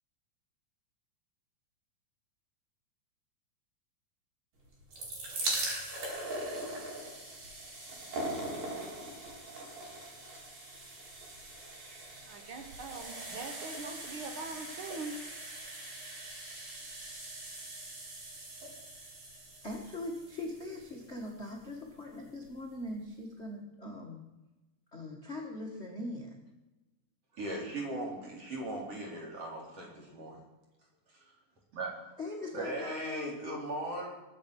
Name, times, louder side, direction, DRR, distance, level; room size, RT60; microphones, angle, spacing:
sound 1, 4.7-21.7 22.5-22.6 22.8-22.9, right 1 dB, 60° right, 6.1 m, -41 dB
voice 1, 12.2-15.1, right 3 dB, 80° right, 5 dB, 1.1 m, -42 dB
voice 2, 19.6-24.2 24.9-26.4 29.2-29.3 32.2-33.4, left 1 dB, 35° left, 0 dB, 1.0 m, -41 dB
voice 3, 27.3-30.4 31.1-31.3 31.7-31.9 32.5-34.1, right 1 dB, 40° right, -2 dB, 4.6 m, -38 dB
22.0 x 8.5 x 6.2 m, 1.0 s
omnidirectional pair, 4.6 m